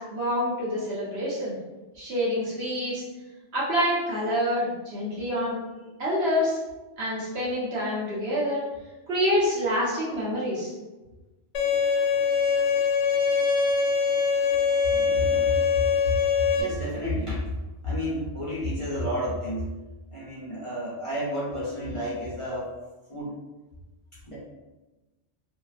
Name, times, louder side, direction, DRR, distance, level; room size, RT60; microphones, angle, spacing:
voice 1, 0.0-1.5 2.0-3.0 3.5-5.5 6.0-6.6 7.0-8.6 9.1-10.7, equal, 60° right, -7 dB, 1.2 m, -27 dB
Bowed string instrument, 11.5-16.6, left 6 dB, 75° left, 1.0 m, -23 dB
voice 2, 14.9-15.8 16.6-17.5 17.8-19.7 20.1-22.7 23.1-23.4 24.2-24.3, equal, 30° left, -9 dB, 0.7 m, -31 dB
2.8 x 2.6 x 2.4 m, 1.1 s
omnidirectional pair, 1.2 m